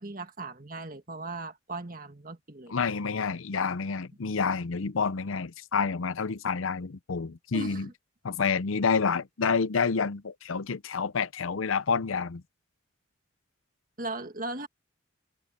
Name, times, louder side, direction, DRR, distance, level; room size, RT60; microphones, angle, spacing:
voice 1, 0.0-2.7 7.5-7.9 14.0-14.7, right 2 dB, 40° right, 1.9 m, -38 dB
voice 2, 2.7-7.9 8.2-12.4, left 5 dB, 80° left, 0.7 m, -28 dB
head